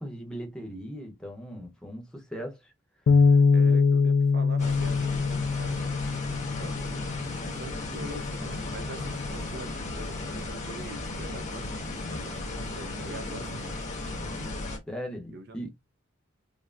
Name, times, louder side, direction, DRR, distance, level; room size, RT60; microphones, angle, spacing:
voice 1, 0.0-2.7 13.3-13.5 14.9-15.7, equal, 5° left, 0.8 m, -39 dB
Bass guitar, 3.1-7.5 8.1-9.3, left 4 dB, 65° left, 0.3 m, -24 dB
voice 2, 3.5-7.0 7.6-13.8 15.3-15.7, right 1 dB, 55° right, 0.7 m, -44 dB
sound 1, 4.6-14.8, left 2 dB, 35° left, 1.3 m, -35 dB
5.3 x 2.1 x 2.5 m
head